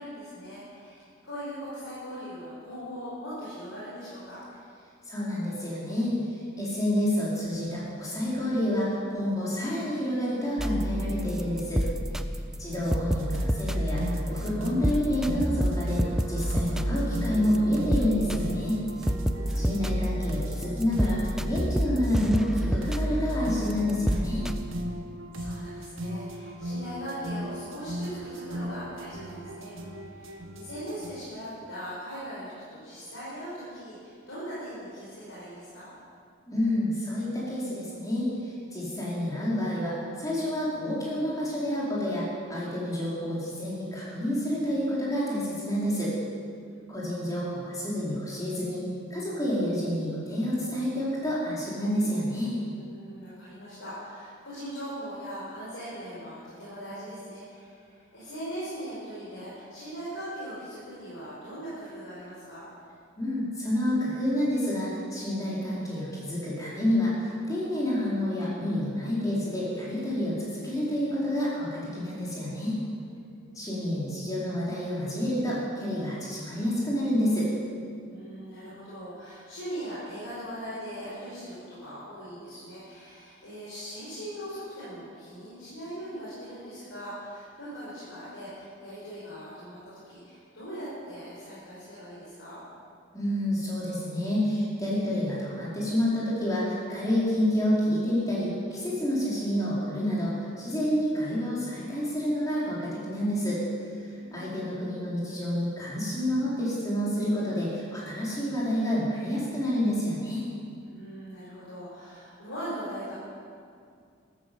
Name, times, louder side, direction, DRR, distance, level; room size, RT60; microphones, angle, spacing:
voice 1, 0.0-4.4 12.6-13.0 19.3-19.9 25.3-35.9 46.5-47.2 52.7-62.6 72.9-73.6 78.1-92.6 104.1-104.5 110.9-113.1, equal, 75° left, -10 dB, 5.3 m, -40 dB
voice 2, 5.1-11.8 12.6-16.0 16.3-18.8 19.5-24.4 36.5-46.1 46.9-48.8 49.1-52.5 63.2-72.8 73.5-77.5 93.1-103.6 104.0-110.4, equal, 15° left, -7 dB, 4.8 m, -29 dB
sound 1, 10.6-24.6, equal, 5° right, 0.4 m, -29 dB
sound 2, 13.2-31.1, equal, 75° right, 1.5 m, -38 dB
14.0 x 13.5 x 7.1 m, 2.3 s
head